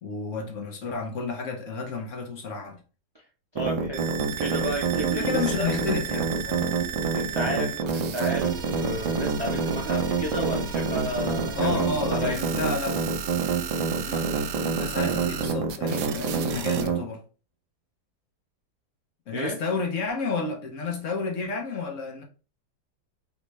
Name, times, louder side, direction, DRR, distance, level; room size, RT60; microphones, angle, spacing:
voice 1, 0.0-2.8 5.1-6.7 11.5-13.0 14.0-17.2 19.3-22.2, left 4 dB, 55° left, 1.1 m, -31 dB
voice 2, 3.5-4.1 4.4-5.7 7.1-12.5 19.3-19.6, right 1 dB, 35° right, 0.4 m, -32 dB
sound 1, 3.6-17.0, right 5 dB, 60° right, 1.1 m, -27 dB
sound 2, 3.9-16.9, right 7 dB, 85° right, 0.6 m, -35 dB
3.8 x 3.3 x 3.1 m
omnidirectional pair, 1.7 m